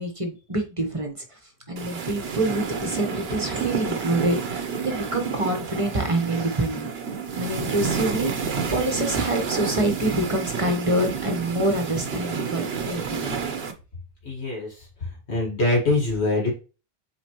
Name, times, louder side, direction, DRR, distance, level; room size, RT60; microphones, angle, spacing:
voice 1, 0.0-1.4 1.7-6.9 7.3-13.3, right 1 dB, 30° right, 4 dB, 1.3 m, -26 dB
sound 1, 1.8-13.7, right 6 dB, 70° right, 1.2 m, -30 dB
voice 2, 14.2-14.7 15.3-16.5, left 2 dB, 80° left, -2 dB, 2.2 m, -23 dB
8.2 x 3.9 x 3.1 m, 0.33 s
omnidirectional pair, 1.1 m